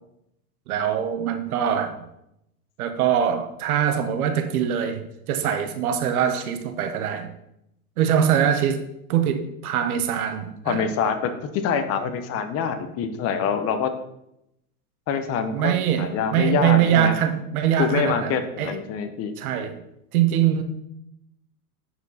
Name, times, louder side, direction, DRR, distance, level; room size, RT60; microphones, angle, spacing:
voice 1, 0.7-2.0 2.8-7.3 8.0-10.8 15.5-18.8 19.4-19.7 20.1-20.6, right 9 dB, 70° right, 7 dB, 1.4 m, -23 dB
voice 2, 10.6-13.9 15.1-15.7 16.0-17.1 17.8-19.3, left 6 dB, 30° left, 8 dB, 0.9 m, -25 dB
10.5 x 4.7 x 4.2 m, 0.81 s
hypercardioid pair, 125°, 46 cm